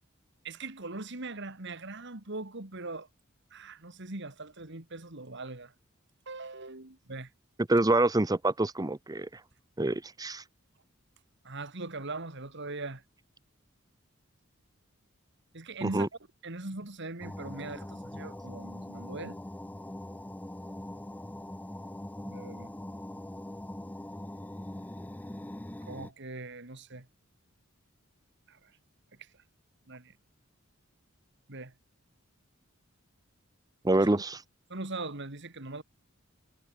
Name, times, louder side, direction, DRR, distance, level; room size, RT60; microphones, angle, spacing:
voice 1, 0.4-3.1 3.5-5.7 6.3-7.3 11.4-13.0 15.5-16.1 16.4-19.4 22.2-22.7 25.9-27.1 28.5-28.7 29.2-29.3 29.9-30.1 31.5-31.7 33.9-34.1 34.7-35.8, right 2 dB, 60° right, 2.7 m, -40 dB
voice 2, 7.7-9.3 9.8-10.4 15.8-16.1 33.8-34.4, right 2 dB, 20° right, 0.8 m, -26 dB
sound 1, 17.2-26.1, left 1 dB, 10° left, 0.5 m, -42 dB
head